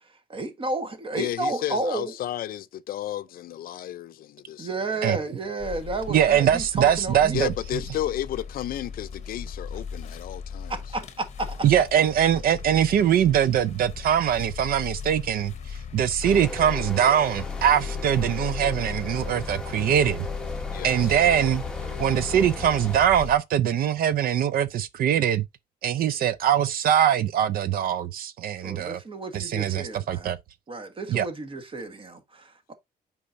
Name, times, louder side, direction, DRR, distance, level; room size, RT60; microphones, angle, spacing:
voice 1, 0.3-2.1 4.6-7.4 10.7-11.6 21.8-22.0 28.6-30.3 30.7-32.7, right 2 dB, 35° right, 1.4 m, -32 dB
voice 2, 1.1-5.0 7.3-10.7 20.7-21.5, left 12 dB, 65° left, 0.5 m, -33 dB
sound 1, 5.6-23.4, left 6 dB, 45° left, 0.8 m, -37 dB
voice 3, 6.1-7.8 11.6-20.3 20.8-21.6 22.0-25.5 25.8-29.0 29.3-30.4 31.1-31.3, right 9 dB, 65° right, 0.5 m, -22 dB
sound 2, 16.2-23.1, left 2 dB, 5° left, 1.0 m, -37 dB
8.4 x 4.8 x 2.6 m
cardioid pair, 135°, 16 cm